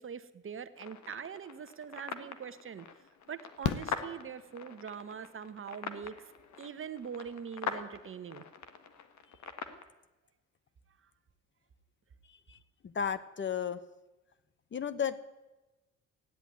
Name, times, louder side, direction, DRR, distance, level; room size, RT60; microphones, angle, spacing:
voice 1, 0.0-2.9 3.3-6.3 6.6-8.4, right 7 dB, 45° right, 12 dB, 1.0 m, -43 dB
sound 1, 0.8-9.8, left 7 dB, 65° left, 1.6 m, -43 dB
Fireworks, 2.0-2.1 3.6-5.0 6.7-6.8 7.0-7.1, left 10 dB, 90° left, 1.0 m, -36 dB
voice 2, 12.8-13.8 14.7-15.2, left 7 dB, 40° left, 15 dB, 0.9 m, -33 dB
14.5 x 10.0 x 9.4 m, 1.1 s
cardioid pair, 90°, 30 cm